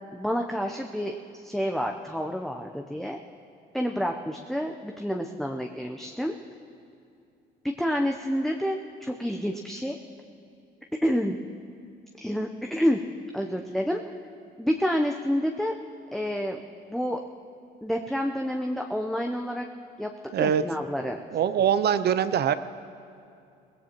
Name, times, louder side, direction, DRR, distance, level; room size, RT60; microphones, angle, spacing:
voice 1, 0.1-3.2 3.7-6.3 7.6-10.0 11.0-11.4 12.2-13.0 13.3-14.0 14.6-15.7 16.1-16.6 16.9-17.2 17.8-19.7 20.0-20.1 20.4-21.2, equal, ahead, 2 dB, 0.7 m, -28 dB
voice 2, 20.3-20.6 21.3-22.5, right 9 dB, 50° right, 12 dB, 0.6 m, -23 dB
19.0 x 16.5 x 3.0 m, 2.6 s
supercardioid pair, 70°, 21 cm